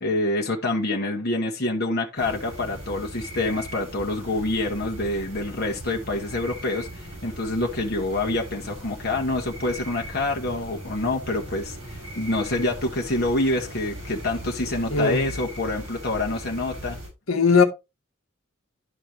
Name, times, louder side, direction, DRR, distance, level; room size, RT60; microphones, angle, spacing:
voice 1, 0.0-17.0, left 2 dB, 50° left, 1.2 m, -27 dB
sound 1, 2.2-17.1, equal, 65° right, 5.4 m, -39 dB
voice 2, 14.9-15.3 17.3-17.6, left 5 dB, 75° left, 1.3 m, -18 dB
11.5 x 4.4 x 3.1 m
head